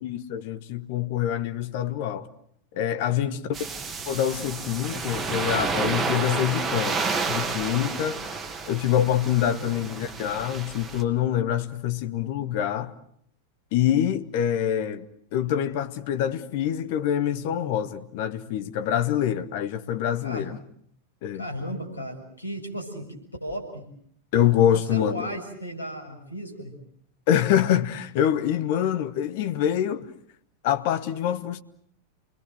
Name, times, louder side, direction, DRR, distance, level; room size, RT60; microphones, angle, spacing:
voice 1, 0.0-2.3 2.7-3.4 4.1-8.3 8.7-12.9 13.7-15.1 15.3-20.6 21.2-21.4 24.3-25.1 27.3-30.1 30.6-31.6, left 10 dB, 50° left, 1.4 m, -25 dB
voice 2, 3.1-3.5 9.6-9.9 20.2-20.5 21.4-23.1 23.4-23.8 24.6-26.7, equal, 80° left, 6.9 m, -35 dB
sound 1, 3.5-11.0, right 4 dB, 15° right, 2.5 m, -30 dB
29.0 x 21.5 x 7.9 m
figure-of-eight pair, 90°, 0 cm